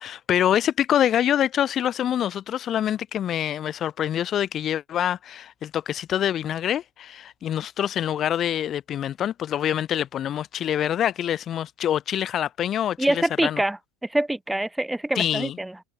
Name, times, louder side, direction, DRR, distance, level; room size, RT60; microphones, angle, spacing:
voice 1, 0.0-13.6 15.2-15.6, left 10 dB, 40° left, 1.2 m, -25 dB
voice 2, 13.0-13.8 14.1-15.8, right 1 dB, 5° right, 1.2 m, -25 dB
hypercardioid pair, 80°, 0 cm